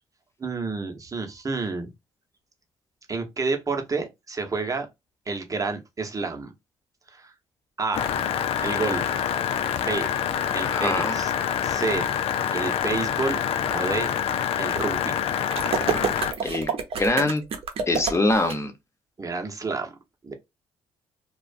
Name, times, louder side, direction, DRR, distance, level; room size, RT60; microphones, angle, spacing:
voice 1, 0.4-1.9 3.1-4.9 5.3-6.5 7.1-7.3 7.8-8.1 8.6-9.1 9.7-10.1 10.5-11.3 11.6-12.1 12.5-13.4 13.7-14.1 14.6-15.2 19.2-20.0 20.2-20.3, right 4 dB, 30° right, 0.8 m, -29 dB
sound 1, 7.9-16.3, left 9 dB, 60° left, 0.4 m, -26 dB
voice 2, 10.6-11.1 16.4-16.7 17.0-17.4 17.9-18.7, left 2 dB, 25° left, 0.9 m, -23 dB
sound 2, 15.5-18.5, right 6 dB, 60° right, 0.7 m, -28 dB
2.4 x 2.2 x 2.4 m
hypercardioid pair, 50°, 11 cm